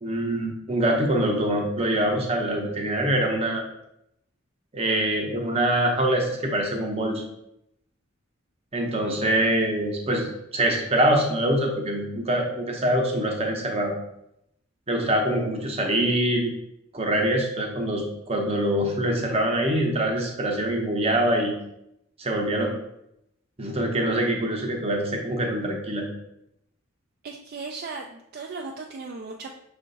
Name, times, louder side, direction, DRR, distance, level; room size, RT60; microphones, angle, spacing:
voice 1, 0.0-3.6 4.7-7.2 8.7-13.9 14.9-16.5 16.9-21.5 22.2-22.7 23.6-26.1, right 1 dB, 30° right, 1 dB, 0.8 m, -24 dB
voice 2, 27.2-29.5, right 4 dB, 50° right, 2 dB, 0.3 m, -37 dB
5.5 x 2.4 x 3.9 m, 0.80 s
head